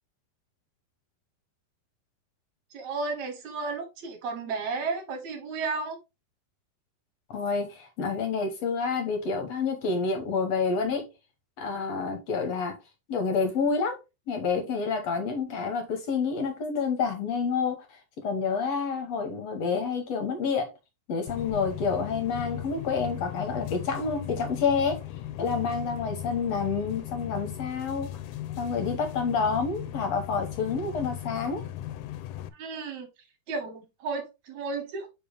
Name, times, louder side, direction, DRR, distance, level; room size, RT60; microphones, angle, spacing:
voice 1, 2.7-6.0 32.5-33.1 33.5-35.1, right 4 dB, 65° right, 2.4 m, -33 dB
voice 2, 7.3-11.1 11.6-12.8 13.1-14.0 14.3-20.7 21.1-25.0 25.4-28.2 28.6-31.7, left 5 dB, 60° left, 2.1 m, -28 dB
sound 1, 21.3-32.5, left 12 dB, 85° left, 2.1 m, -37 dB
6.9 x 4.8 x 3.4 m
omnidirectional pair, 3.7 m